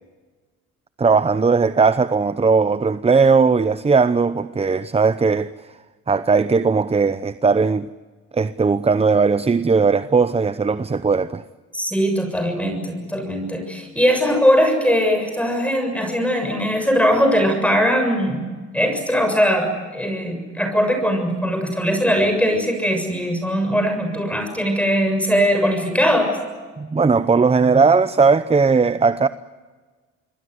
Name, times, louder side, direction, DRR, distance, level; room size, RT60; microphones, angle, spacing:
voice 1, 1.0-5.5 6.1-7.9 8.3-11.4 26.8-29.3, right 4 dB, 20° right, 0.8 m, -18 dB
voice 2, 11.7-18.4 18.7-26.4, equal, 5° left, 7.0 m, -20 dB
27.0 x 22.5 x 8.1 m
cardioid pair, 90°, 30 cm